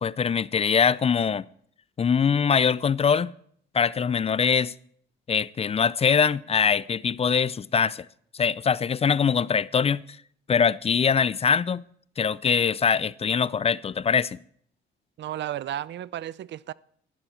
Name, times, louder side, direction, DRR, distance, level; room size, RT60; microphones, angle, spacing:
voice 1, 0.0-1.4 2.0-3.3 3.7-4.7 5.3-8.1 8.3-10.0 10.5-11.8 12.2-14.4, left 6 dB, 30° left, 0.4 m, -23 dB
voice 2, 15.2-16.7, right 12 dB, 65° right, 0.5 m, -33 dB
12.0 x 11.5 x 4.4 m
cardioid pair, 90°, 20 cm